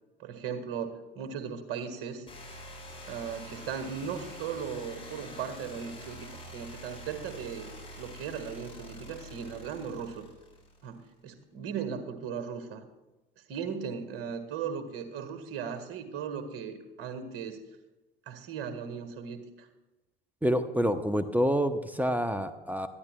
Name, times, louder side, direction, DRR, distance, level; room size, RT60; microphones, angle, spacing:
voice 1, 0.2-2.3 3.1-10.2 10.8-12.8 13.4-17.6 18.3-19.7, right 7 dB, 50° right, 8 dB, 1.7 m, -37 dB
sound 1, 2.3-11.0, equal, 20° left, 5.0 m, -46 dB
voice 2, 20.4-22.9, equal, 5° right, 11 dB, 0.8 m, -27 dB
22.0 x 13.5 x 2.3 m, 1.1 s
figure-of-eight pair, 60°, 29 cm